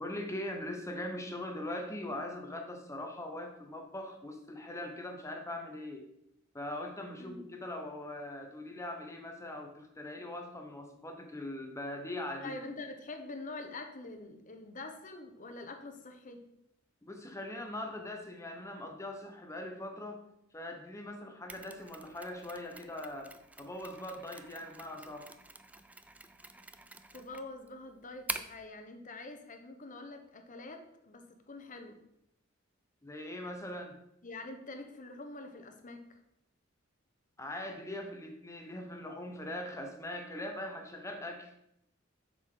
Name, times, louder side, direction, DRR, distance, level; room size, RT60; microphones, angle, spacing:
voice 1, 0.0-6.1 6.5-12.6 17.0-20.2 20.5-25.3 33.0-34.0 37.4-41.5, left 1 dB, 15° left, 4 dB, 0.9 m, -41 dB
voice 2, 12.4-16.5 27.1-32.0 34.2-36.2, left 2 dB, 40° left, 6 dB, 1.0 m, -45 dB
Mechanisms, 21.5-28.7, right 2 dB, 5° right, 0.4 m, -46 dB
7.7 x 6.5 x 3.8 m, 0.80 s
head